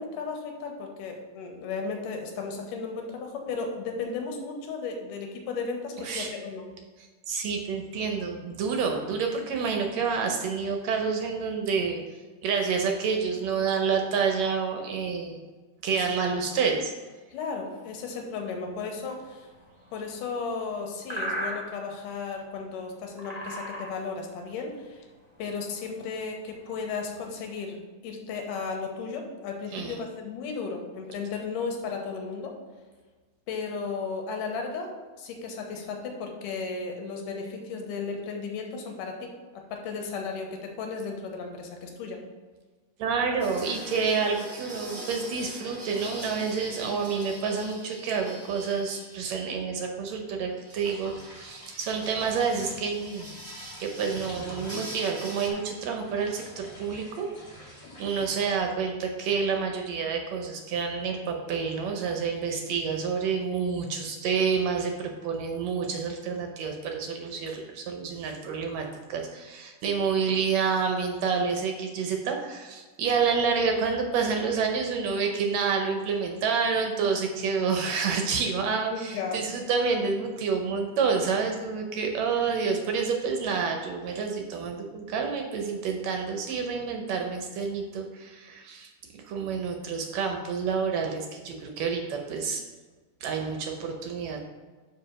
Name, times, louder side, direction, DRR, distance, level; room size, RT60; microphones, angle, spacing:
voice 1, 0.0-6.6 16.0-16.2 17.3-19.5 19.9-25.0 25.4-27.8 28.0-32.6 33.5-42.2 57.8-58.1 78.9-79.4, left 4 dB, 85° left, 3 dB, 2.6 m, -35 dB
voice 2, 6.0-6.3 7.3-12.0 12.4-15.4 15.8-16.9 29.7-30.0 43.0-53.3 53.8-88.9 89.2-92.6 93.2-94.4, right 5 dB, 75° right, 3 dB, 1.7 m, -28 dB
sound 1, 17.9-27.5, right 1 dB, 45° right, 0.5 m, -40 dB
sound 2, 43.4-49.5 50.5-55.5, right 1 dB, 25° right, 1.1 m, -43 dB
sound 3, 50.8-58.6, equal, 40° left, 1.4 m, -46 dB
5.9 x 4.8 x 6.0 m, 1.3 s
omnidirectional pair, 3.7 m